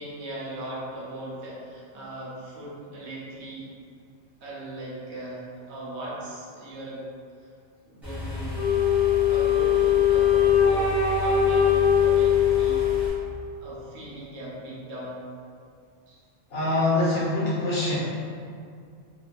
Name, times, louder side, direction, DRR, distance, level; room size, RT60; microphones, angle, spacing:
voice 1, 0.0-3.7 4.4-7.0 7.8-8.6 9.3-10.9 11.2-13.0 13.6-15.2 16.1-16.2, right 1 dB, 75° right, -6 dB, 0.9 m, -38 dB
sound 1, 8.0-13.1, left 3 dB, ahead, 0.8 m, -34 dB
Wind instrument woodwind instrument, 8.5-13.6, left 8 dB, 35° left, 0.6 m, -21 dB
voice 2, 16.5-17.9, left 2 dB, 65° left, -9 dB, 1.0 m, -24 dB
2.4 x 2.3 x 2.4 m, 2.3 s
omnidirectional pair, 1.2 m